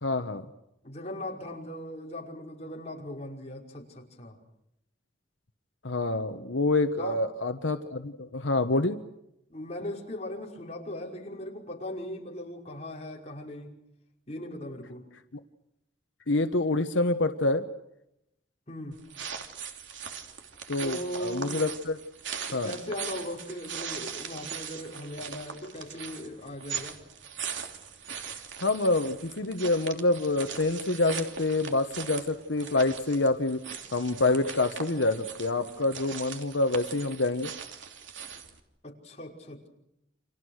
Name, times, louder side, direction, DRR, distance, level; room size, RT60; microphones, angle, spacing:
voice 1, 0.0-0.4 5.8-9.0 16.3-17.6 20.7-22.0 22.5-22.7 28.6-33.6 33.9-37.5, left 2 dB, 85° left, 1.3 m, -27 dB
voice 2, 0.8-4.4 7.0-7.2 9.5-13.8 14.3-15.0 18.7-19.0 20.8-21.6 22.5-27.0 38.8-39.7, left 1 dB, 35° left, 5.5 m, -38 dB
sound 1, 18.9-38.6, right 7 dB, 85° right, 3.1 m, -40 dB
30.0 x 27.0 x 6.5 m
head